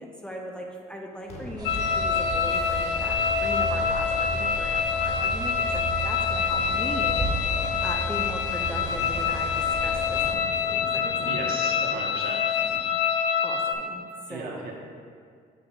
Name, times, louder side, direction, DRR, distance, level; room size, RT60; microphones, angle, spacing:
voice 1, 0.0-7.3 7.8-11.4 13.4-14.7, equal, 5° left, 0 dB, 0.6 m, -39 dB
sound 1, 1.3-12.8, left 1 dB, 40° left, 1.1 m, -45 dB
sound 2, 1.6-13.7, left 7 dB, 80° left, 0.4 m, -26 dB
sound 3, 1.6-10.3, right 2 dB, 25° right, 1.0 m, -34 dB
voice 2, 11.2-12.4 14.3-14.7, right 3 dB, 65° right, -1 dB, 1.1 m, -35 dB
6.6 x 2.9 x 5.7 m, 2.1 s
cardioid pair, 110°, 17 cm